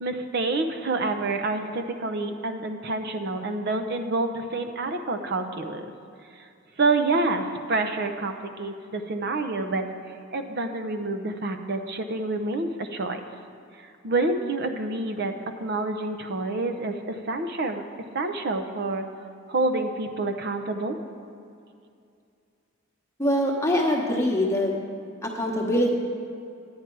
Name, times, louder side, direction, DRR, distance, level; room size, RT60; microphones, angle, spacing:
voice 1, 0.0-5.9 6.8-9.9 10.3-13.2 14.0-15.3 15.6-17.8 18.1-19.1 19.5-21.0, right 2 dB, 55° right, 6 dB, 0.7 m, -27 dB
voice 2, 23.2-24.7 25.2-25.9, left 1 dB, 15° left, -1 dB, 1.1 m, -23 dB
10.5 x 9.6 x 4.6 m, 2.4 s
head